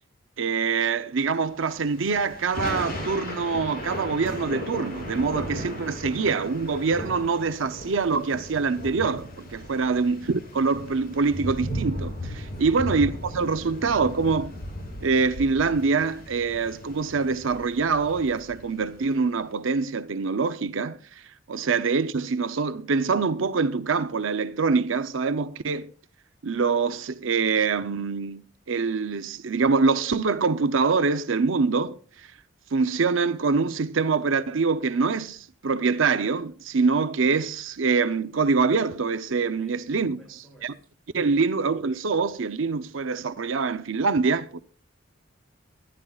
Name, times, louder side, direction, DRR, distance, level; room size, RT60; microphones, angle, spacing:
voice 1, 0.4-14.5 15.0-25.9 26.4-28.4 28.7-32.3 32.7-40.2 40.6-40.7 41.1-44.6, right 4 dB, 80° right, 0.6 m, -25 dB
Thunder / Rain, 1.7-19.2, equal, 50° left, 6.9 m, -36 dB
voice 2, 39.6-40.7 41.2-41.4, equal, ahead, 6.5 m, -52 dB
23.5 x 12.5 x 2.4 m
head